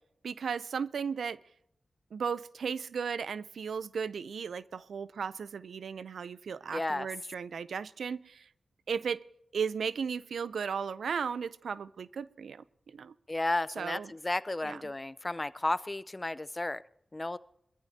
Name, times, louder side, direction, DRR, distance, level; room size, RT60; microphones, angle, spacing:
voice 1, 0.2-1.4 2.1-8.5 8.9-9.2 9.5-13.1 13.8-14.1 14.6-14.8, right 6 dB, 90° right, 0.4 m, -35 dB
voice 2, 6.7-7.1 13.3-16.8 17.1-17.4, left 2 dB, 30° left, 0.6 m, -33 dB
22.0 x 14.0 x 2.7 m
cardioid pair, 45°, 0 cm